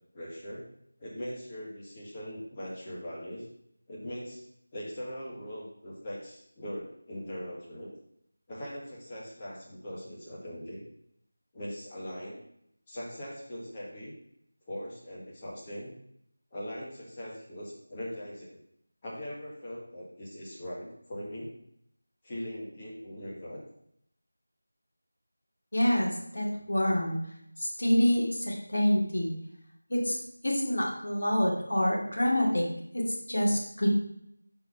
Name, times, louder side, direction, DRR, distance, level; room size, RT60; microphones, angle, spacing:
voice 1, 0.1-0.7 1.0-3.5 3.9-4.4 4.7-7.9 8.5-10.8 11.5-12.4 12.9-14.1 14.7-15.9 16.5-18.6 19.0-21.5 22.2-23.6, equal, 20° left, -5 dB, 1.8 m, -40 dB
voice 2, 25.7-27.2 27.6-29.3 29.9-30.2 30.4-32.7 32.9-33.9, equal, 65° left, -3 dB, 2.4 m, -27 dB
5.3 x 4.7 x 5.8 m, 0.74 s
figure-of-eight pair, 170°, 0 cm